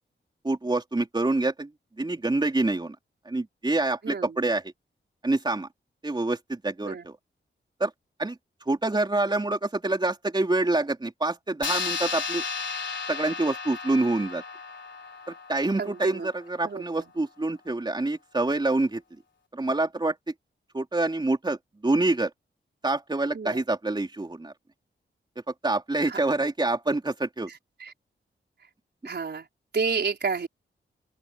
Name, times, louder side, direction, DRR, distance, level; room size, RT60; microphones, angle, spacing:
voice 1, 0.4-1.7 2.0-3.0 3.3-4.6 5.2-5.7 6.0-7.2 7.8-7.9 8.2-8.4 8.7-12.4 13.1-14.4 15.5-19.0 19.5-20.2 20.7-22.3 22.8-24.5 25.6-27.5, right 2 dB, 20° right, 3.5 m, -26 dB
voice 2, 4.0-4.4 6.8-7.1 15.8-16.3 16.6-16.8 23.3-23.6 26.0-26.2 27.5-27.9 29.0-29.5 29.7-30.5, right 5 dB, 60° right, 4.7 m, -30 dB
sound 1, 11.6-16.5, left 5 dB, 70° left, 3.5 m, -34 dB
open air
wide cardioid pair, 115°, 20 cm